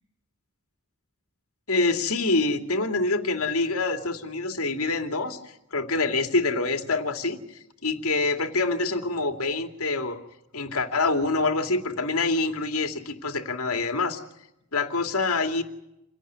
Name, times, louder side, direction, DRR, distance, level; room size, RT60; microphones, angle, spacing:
voice 1, 1.7-10.2 10.5-14.2 14.7-15.6, left 3 dB, 70° left, 6 dB, 2.6 m, -26 dB
28.0 x 17.5 x 9.5 m, 0.85 s
head